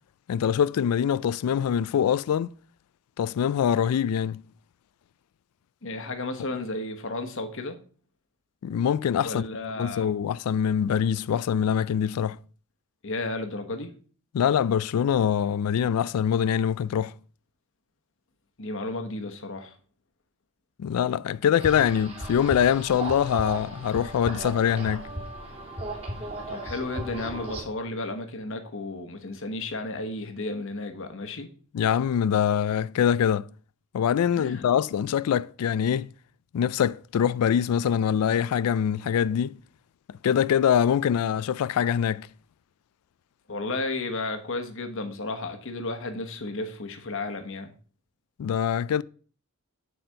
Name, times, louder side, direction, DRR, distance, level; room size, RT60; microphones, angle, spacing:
voice 1, 0.3-2.5 3.2-4.4 8.6-9.4 9.8-12.4 14.3-17.1 20.8-25.1 31.7-33.5 33.9-36.1 36.5-39.6 40.2-42.3 48.4-49.0, left 8 dB, 80° left, 0.3 m, -24 dB
voice 2, 5.8-7.8 9.2-10.1 13.0-13.9 18.6-19.8 26.5-31.5 34.3-34.6 43.5-47.7, left 2 dB, 60° left, 1.2 m, -33 dB
sound 1, 21.6-27.6, right 1 dB, 25° right, 2.3 m, -36 dB
8.0 x 4.3 x 6.4 m
head